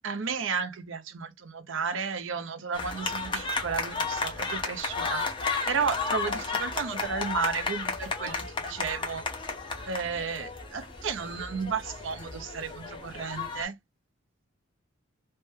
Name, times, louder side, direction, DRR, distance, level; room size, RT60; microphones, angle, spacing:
voice 1, 0.0-5.3 5.7-9.2 9.9-13.8, right 6 dB, 70° right, 0.6 m, -33 dB
sound 1, 2.7-13.6, left 4 dB, 25° left, 0.8 m, -33 dB
3.3 x 2.1 x 3.1 m
head